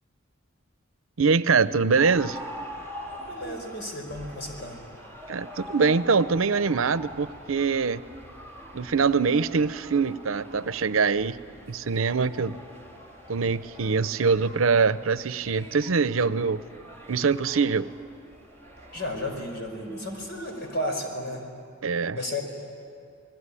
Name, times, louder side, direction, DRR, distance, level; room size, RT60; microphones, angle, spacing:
voice 1, 1.2-2.4 5.3-8.0 8.7-11.4 11.7-12.6 13.3-16.6 17.1-17.9 21.8-22.2, right 5 dB, 85° right, 15 dB, 0.7 m, -23 dB
sound 1, 2.0-20.9, equal, 10° left, 3.6 m, -44 dB
voice 2, 3.1-4.8 18.9-21.4 22.1-22.4, left 1 dB, 55° left, 3 dB, 5.1 m, -33 dB
28.5 x 20.0 x 9.9 m, 2.3 s
head